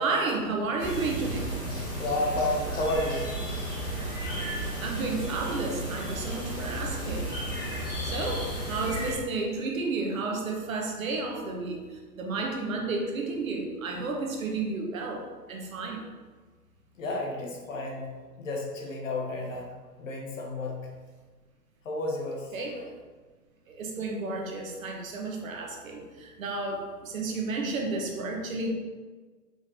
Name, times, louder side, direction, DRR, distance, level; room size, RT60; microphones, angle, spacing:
voice 1, 0.0-1.4 4.8-7.4 8.0-15.2 15.5-16.1 22.5-22.9 23.7-28.7, right 3 dB, 55° right, 1 dB, 0.9 m, -32 dB
sound 1, 0.8-9.1, right 1 dB, 15° left, 0.5 m, -33 dB
voice 2, 2.0-3.2 17.0-19.7 20.0-20.9 21.8-22.5, left 2 dB, 50° left, 0 dB, 0.9 m, -31 dB
4.9 x 3.4 x 2.6 m, 1.4 s
hypercardioid pair, 155°, 48 cm